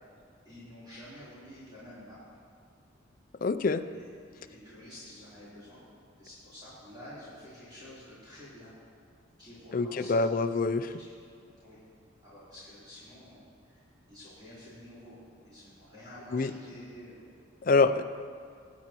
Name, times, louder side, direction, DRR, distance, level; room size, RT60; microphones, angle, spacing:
voice 1, 0.4-2.2 3.9-4.1 4.4-5.8 6.2-8.7 9.4-10.4 10.8-10.9 11.6-11.8 12.2-13.8 14.1-15.2 15.4-17.3, left 1 dB, 20° right, -13 dB, 3.8 m, -49 dB
voice 2, 3.4-3.8 9.7-10.9 16.3-16.5 17.6-18.0, left 3 dB, 40° left, 11 dB, 0.4 m, -25 dB
23.5 x 9.4 x 3.0 m, 2.3 s
head